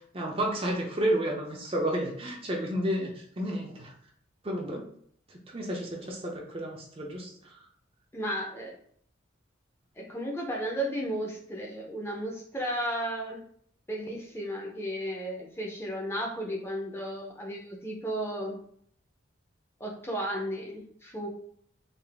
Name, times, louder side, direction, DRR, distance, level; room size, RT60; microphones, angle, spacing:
voice 1, 0.1-3.9 4.4-4.8 5.3-7.5, right 1 dB, 30° right, 0 dB, 0.5 m, -31 dB
voice 2, 8.1-8.8 10.0-13.4 13.9-18.6 19.8-21.3, right 1 dB, 10° left, -1 dB, 0.6 m, -34 dB
3.9 x 2.5 x 3.4 m, 0.63 s
head